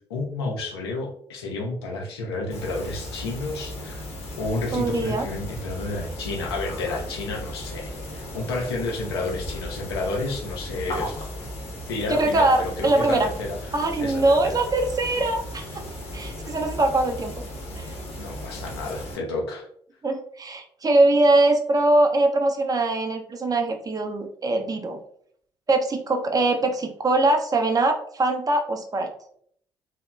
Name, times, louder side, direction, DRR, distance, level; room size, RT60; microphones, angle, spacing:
voice 1, 0.1-4.0 4.4-11.3 11.9-13.6 14.0-14.6 18.2-19.7, left 2 dB, 85° left, 1 dB, 0.4 m, -30 dB
sound 1, 2.5-19.2, left 1 dB, 50° left, 0.8 m, -36 dB
voice 2, 4.7-5.3 12.2-13.3 13.7-15.8 16.1-17.3 17.7-17.9 20.0-25.0 25.7-29.1, right 2 dB, 30° right, 4 dB, 0.5 m, -22 dB
2.8 x 2.1 x 2.2 m, 0.63 s
figure-of-eight pair, 45°, 13 cm